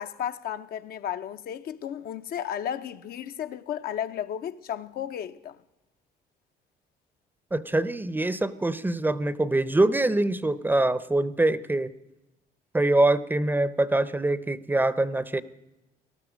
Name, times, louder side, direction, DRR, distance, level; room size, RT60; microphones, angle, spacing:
voice 1, 0.0-5.6, left 9 dB, 60° left, 0.8 m, -33 dB
voice 2, 7.5-11.9 12.7-15.4, right 2 dB, 10° right, 0.7 m, -24 dB
19.0 x 13.0 x 5.1 m
cardioid pair, 110°, 17 cm